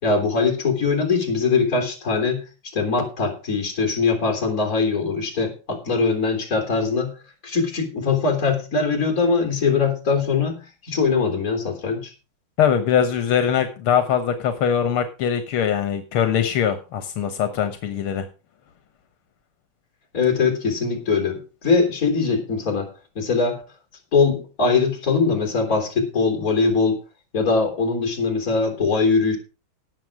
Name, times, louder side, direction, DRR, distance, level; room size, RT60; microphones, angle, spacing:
voice 1, 0.0-2.4 2.7-7.1 7.4-12.1 20.1-22.9 23.2-23.6 24.1-27.0 27.3-29.4, left 4 dB, 40° left, 4 dB, 3.9 m, -21 dB
voice 2, 12.6-18.3, left 8 dB, 80° left, 9 dB, 2.0 m, -22 dB
17.5 x 6.8 x 4.9 m, 0.33 s
omnidirectional pair, 2.3 m